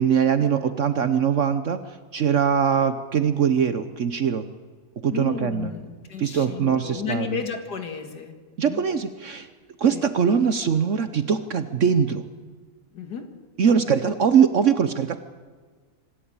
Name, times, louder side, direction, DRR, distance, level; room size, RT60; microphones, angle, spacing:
voice 1, 0.0-1.8 2.1-4.4 5.0-5.7 6.2-7.3 8.6-9.5 9.8-12.2 13.6-15.2, right 7 dB, 55° right, 11 dB, 1.1 m, -21 dB
voice 2, 5.1-8.8 9.9-10.1 12.9-13.3, left 6 dB, 80° left, 6 dB, 2.5 m, -33 dB
25.5 x 12.5 x 8.8 m, 1.5 s
omnidirectional pair, 1.7 m